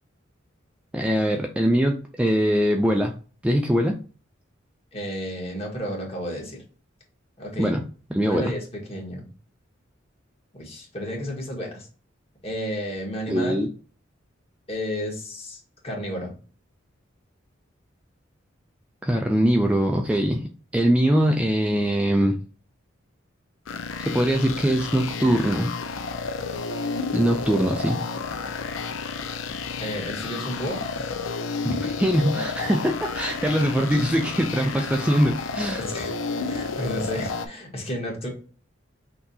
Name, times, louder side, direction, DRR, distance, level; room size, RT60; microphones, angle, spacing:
voice 1, 0.9-3.1 3.4-4.0 7.6-7.8 8.1-8.5 13.3-13.7 19.0-22.4 24.0-25.7 27.1-28.0 31.6-35.9, equal, 5° right, 2 dB, 0.3 m, -22 dB
voice 2, 4.9-6.6 7.4-7.8 8.2-9.3 10.5-11.9 12.4-13.6 14.7-16.3 29.8-30.8 35.8-36.1 36.5-38.3, equal, 30° left, -1 dB, 1.5 m, -32 dB
sound 1, 23.7-37.5, left 4 dB, 85° left, 0.5 m, -31 dB
5.8 x 2.8 x 2.7 m, 0.39 s
head